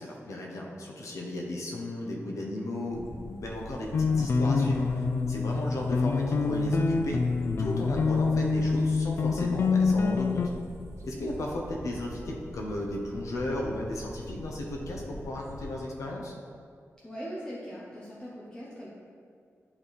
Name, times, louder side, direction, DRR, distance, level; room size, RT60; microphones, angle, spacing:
voice 1, 0.0-7.2 7.6-10.4 11.0-16.4, left 1 dB, 85° left, -1 dB, 0.8 m, -35 dB
sound 1, 2.9-15.8, equal, 75° right, 1.1 m, -44 dB
sound 2, 3.9-10.5, left 4 dB, 50° left, 0.3 m, -26 dB
voice 2, 17.0-18.9, equal, 15° left, -7 dB, 0.8 m, -40 dB
9.8 x 3.5 x 4.1 m, 2.2 s
wide cardioid pair, 175°, 5 cm